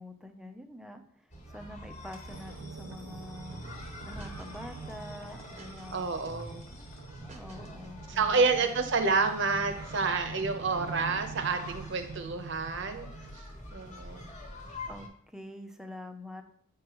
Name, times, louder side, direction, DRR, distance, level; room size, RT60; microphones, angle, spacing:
voice 1, 0.0-6.1 7.3-8.7 14.9-16.4, left 1 dB, 5° right, 5 dB, 0.5 m, -46 dB
sound 1, 1.3-15.1, left 1 dB, 35° left, 1.3 m, -46 dB
sound 2, 2.3-13.4, right 5 dB, 80° right, 0.4 m, -46 dB
sound 3, 3.5-4.6 4.9-6.0 6.3-6.6 7.0-8.7, right 1 dB, 30° right, 0.8 m, -51 dB
voice 2, 5.9-6.6 8.1-13.1 13.7-14.3, right 4 dB, 60° right, 7 dB, 0.8 m, -29 dB
8.5 x 4.9 x 3.0 m, 0.66 s
head